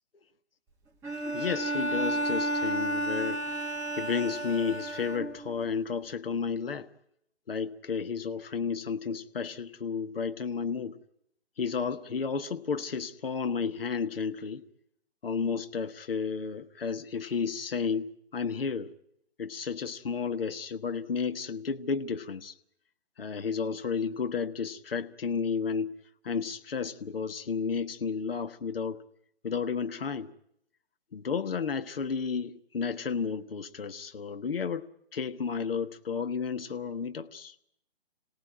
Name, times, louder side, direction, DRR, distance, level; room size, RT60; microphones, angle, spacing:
Bowed string instrument, 1.0-5.6, right 1 dB, 10° right, 1.4 m, -32 dB
voice 1, 1.3-6.9 7.5-11.0 11.6-14.6 15.2-18.9 19.4-22.5 23.2-26.0 26.2-29.0 29.4-30.3 31.1-37.5, left 6 dB, 60° left, 9 dB, 1.4 m, -32 dB
27.0 x 18.0 x 9.9 m, 0.75 s
figure-of-eight pair, 140°, 33 cm